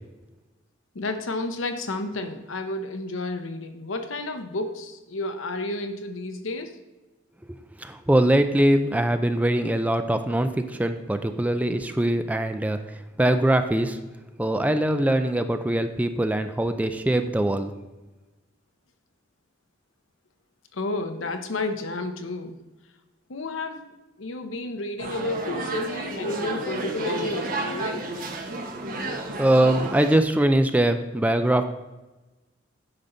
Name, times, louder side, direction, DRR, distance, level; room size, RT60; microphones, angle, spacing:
voice 1, 0.9-6.8 20.7-22.6 23.3-28.1, left 2 dB, 80° left, 6 dB, 0.9 m, -31 dB
voice 2, 7.8-12.8 13.2-14.0 14.4-17.7 29.4-31.6, right 1 dB, 10° right, 8 dB, 0.4 m, -22 dB
sound 1, 25.0-30.2, right 2 dB, 45° right, 0.9 m, -31 dB
9.8 x 5.7 x 3.9 m, 1.1 s
head